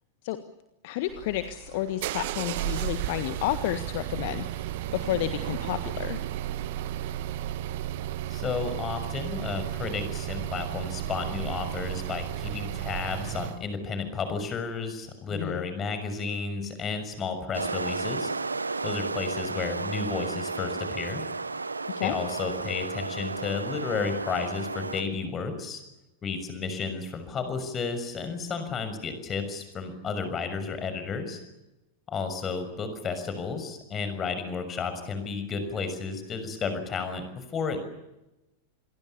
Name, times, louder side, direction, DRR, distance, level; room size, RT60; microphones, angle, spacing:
voice 1, 0.8-4.6 4.9-6.2 15.3-15.6 21.9-22.2, left 14 dB, 50° left, 11 dB, 1.5 m, -31 dB
sound 1, 1.1-13.6, right 13 dB, 50° right, 1.7 m, -33 dB
voice 2, 8.3-18.3 18.8-21.2 22.0-25.8 26.2-31.4 32.1-37.8, left 5 dB, 25° left, 9 dB, 6.3 m, -32 dB
sound 2, 17.5-25.0, right 3 dB, 80° right, 1.2 m, -33 dB
28.5 x 22.5 x 7.0 m, 0.94 s
figure-of-eight pair, 90°, 0 cm